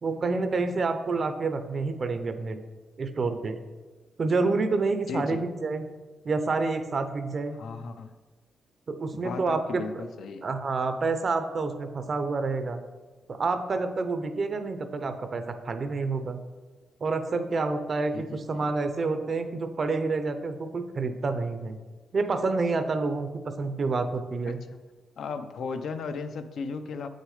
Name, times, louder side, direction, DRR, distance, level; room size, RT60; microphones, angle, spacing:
voice 1, 0.0-2.6 3.0-3.6 4.2-5.9 6.2-7.6 8.9-10.0 10.4-12.8 13.3-16.4 17.0-21.8 22.1-23.3 23.6-24.6, right 3 dB, 35° right, 9 dB, 0.6 m, -28 dB
voice 2, 5.1-5.4 7.5-8.1 9.1-10.5 18.1-18.7 24.5-24.8 25.2-27.1, left 4 dB, 60° left, 8 dB, 0.6 m, -36 dB
8.4 x 6.5 x 4.9 m, 1.3 s
wide cardioid pair, 175°, 0 cm